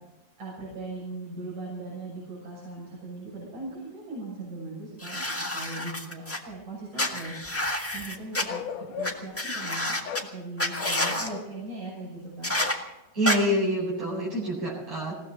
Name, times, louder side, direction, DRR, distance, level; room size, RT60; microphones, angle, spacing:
voice 1, 0.4-10.0 10.3-12.6, right 2 dB, 80° right, -6 dB, 7.6 m, -39 dB
sound 1, 5.0-6.4 7.0-8.4 9.0-9.1 9.4-10.2 10.6-11.3 12.4-12.7 13.2-13.4, left 1 dB, 20° left, 0.3 m, -29 dB
Bark, 8.5-9.4 10.0-10.3 10.8-11.5 12.6-12.8, left 8 dB, 70° left, 2.1 m, -36 dB
voice 2, 13.1-15.1, equal, 65° right, -5 dB, 6.0 m, -26 dB
20.0 x 17.5 x 4.0 m, 1.0 s
omnidirectional pair, 3.4 m